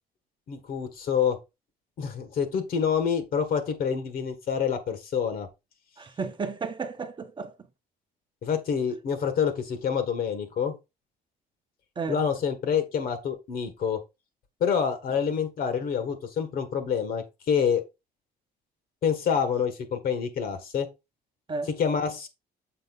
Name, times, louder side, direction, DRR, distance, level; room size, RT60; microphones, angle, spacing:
voice 1, 0.5-1.4 2.0-5.5 8.4-10.7 12.1-14.0 14.6-17.8 19.0-20.9 21.8-22.3, left 7 dB, 60° left, 1.5 m, -27 dB
voice 2, 6.0-7.5 12.0-12.2 21.5-21.7, right 4 dB, 30° right, 0.8 m, -33 dB
6.8 x 4.4 x 4.0 m
cardioid pair, 110°, 17 cm